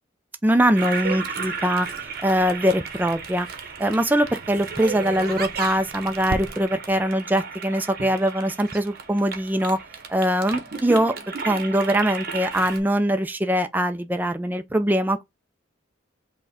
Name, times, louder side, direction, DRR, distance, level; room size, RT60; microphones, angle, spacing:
voice 1, 0.4-1.9 2.2-3.5 3.8-9.8 10.1-11.1 11.5-15.2, equal, 10° right, 0.3 m, -22 dB
Toilet flush, 0.8-12.8, right 5 dB, 50° right, 0.8 m, -34 dB
Crackle, 1.7-7.0, right 3 dB, 90° right, 0.6 m, -40 dB
5.7 x 2.2 x 4.1 m
head